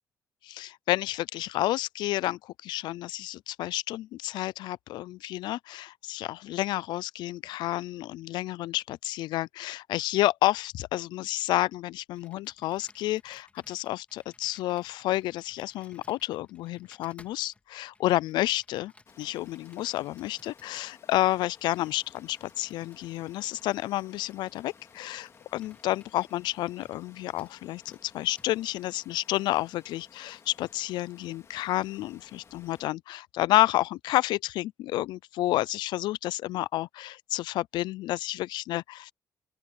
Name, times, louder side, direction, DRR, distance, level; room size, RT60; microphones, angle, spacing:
voice 1, 0.4-18.9 19.2-39.1, left 16 dB, 85° left, 0.4 m, -30 dB
Computer keyboard, 12.1-27.1 27.4-27.6 27.9-28.0 28.4-28.5, left 3 dB, 20° left, 3.7 m, -61 dB
Water, 19.1-32.9, left 6 dB, 40° left, 2.5 m, -57 dB
open air
cardioid pair, 125°, 7 cm